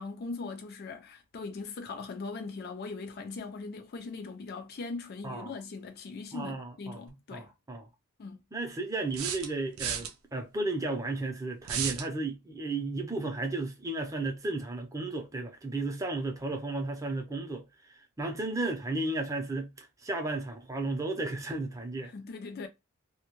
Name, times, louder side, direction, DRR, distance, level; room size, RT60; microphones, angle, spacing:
voice 1, 0.0-7.5 8.2-8.4 22.0-22.7, left 4 dB, 45° left, 0.4 m, -40 dB
voice 2, 5.2-5.5 6.3-7.0 7.3-7.9 8.5-22.1, right 2 dB, 15° right, 0.5 m, -34 dB
sound 1, 7.1-7.2 9.1-10.1 11.6-12.1, right 8 dB, 75° right, 0.4 m, -33 dB
2.2 x 2.1 x 3.0 m
head